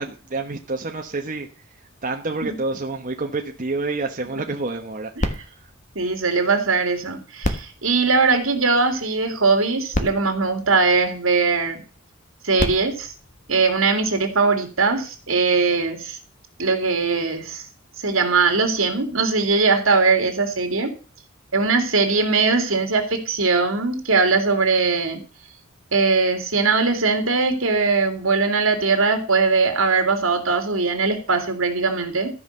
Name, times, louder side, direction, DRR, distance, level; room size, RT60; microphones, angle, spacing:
voice 1, 0.0-1.5 2.0-5.7, right 3 dB, 40° right, 2 dB, 1.2 m, -28 dB
sound 1, 5.2-6.8 7.4-9.0 9.6-9.7 9.9-11.5 12.3-14.2 14.9-15.0, left 1 dB, 40° left, 1.5 m, -31 dB
voice 2, 5.9-11.8 12.4-13.1 13.5-16.2 16.6-17.6 18.0-20.9 21.5-25.2 25.9-32.3, right 4 dB, 75° right, 5 dB, 2.7 m, -20 dB
13.5 x 5.6 x 6.7 m, 0.37 s
head